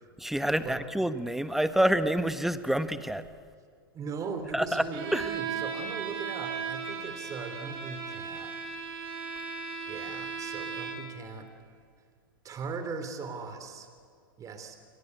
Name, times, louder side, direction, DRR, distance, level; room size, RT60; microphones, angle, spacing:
voice 1, 0.2-3.2 4.5-4.8 5.1-5.3, right 1 dB, ahead, 11 dB, 1.3 m, -27 dB
voice 2, 3.9-8.6 9.9-11.5 12.4-13.9 14.4-14.8, right 5 dB, 30° right, 8 dB, 3.6 m, -39 dB
Bowed string instrument, 4.9-11.2, right 6 dB, 45° right, 4.2 m, -36 dB
29.0 x 23.0 x 8.4 m, 2.1 s
hypercardioid pair, 105°, 12 cm